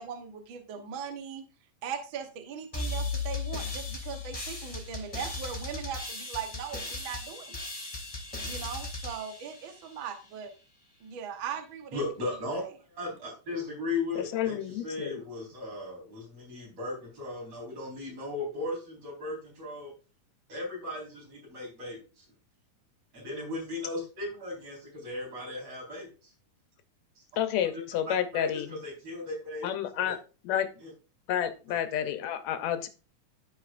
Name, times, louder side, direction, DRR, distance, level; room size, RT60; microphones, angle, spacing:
voice 1, 0.0-1.4 1.8-7.7 8.4-10.5 11.0-12.0, right 7 dB, 70° right, 5 dB, 1.2 m, -39 dB
sound 1, 2.7-10.2, left 3 dB, 15° left, 1.3 m, -37 dB
voice 2, 11.9-14.6 14.8-19.9 20.5-22.2 23.1-26.3 27.2-27.3 28.0-29.7 29.9-30.0 31.7-31.8, left 2 dB, 45° right, -4 dB, 5.3 m, -36 dB
voice 3, 14.2-15.2 27.4-28.7 29.6-30.2 30.4-30.7 31.3-32.9, left 10 dB, 75° left, 9 dB, 1.7 m, -30 dB
14.5 x 5.0 x 2.5 m, 0.33 s
omnidirectional pair, 3.8 m